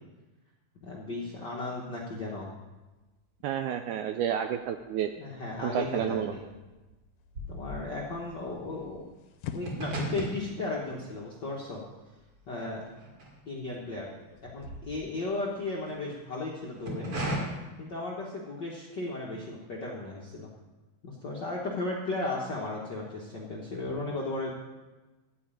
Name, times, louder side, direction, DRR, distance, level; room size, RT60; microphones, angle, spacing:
voice 1, 0.8-2.5 5.2-6.4 7.5-9.1 9.5-11.8 12.5-12.8 13.5-14.1 14.4-17.2 17.8-20.5 21.0-24.5, left 2 dB, 65° left, -4 dB, 1.1 m, -35 dB
voice 2, 3.4-5.1 5.6-6.3, right 9 dB, 85° right, 7 dB, 1.7 m, -30 dB
sound 1, 4.5-5.3 5.6-13.9 14.2-16.0 16.6-17.4, right 1 dB, 45° right, 2.9 m, -39 dB
sound 2, 7.2-14.7, left 7 dB, 80° left, 2.5 m, -48 dB
13.5 x 4.9 x 8.9 m, 1.2 s
omnidirectional pair, 4.0 m